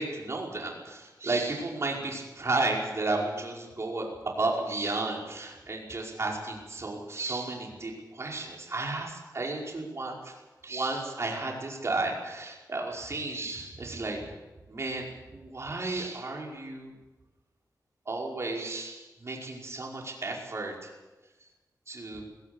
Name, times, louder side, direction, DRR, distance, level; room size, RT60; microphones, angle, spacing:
voice 1, 0.0-10.3 10.6-14.2 14.7-16.9 18.1-20.9 21.9-22.2, right 2 dB, 40° right, -1 dB, 5.2 m, -33 dB
20.0 x 17.5 x 8.2 m, 1.1 s
wide cardioid pair, 135°, 7 cm